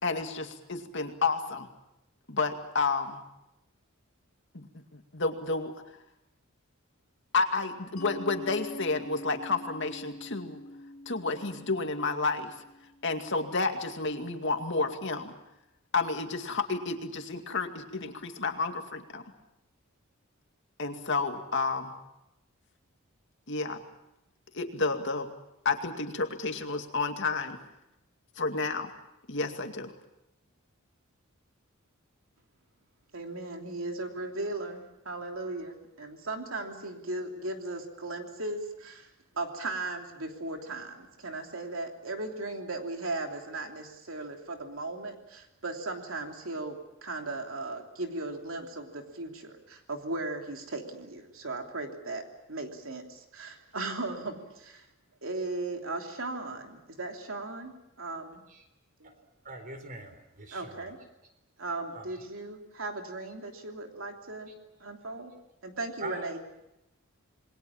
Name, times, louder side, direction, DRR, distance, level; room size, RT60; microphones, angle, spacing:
voice 1, 0.0-1.7 2.3-3.2 4.5-5.7 7.3-10.6 11.1-12.6 13.0-15.3 15.9-19.2 20.8-21.9 23.5-23.8 24.5-25.3 25.6-27.6 28.4-28.9 29.3-29.9, left 3 dB, 55° left, 5 dB, 2.3 m, -30 dB
Mallet percussion, 8.0-13.3, left 1 dB, 85° left, 3.6 m, -45 dB
voice 2, 33.1-39.1 39.3-52.2 52.5-54.8 55.2-58.4 59.0-59.1 60.5-61.0 61.6-64.5 64.8-65.3 65.6-66.4, right 2 dB, 70° right, 3 dB, 3.1 m, -37 dB
voice 3, 59.4-60.9 61.9-62.1 66.0-66.3, right 3 dB, 40° right, 8 dB, 4.2 m, -42 dB
28.0 x 21.5 x 7.3 m, 0.88 s
head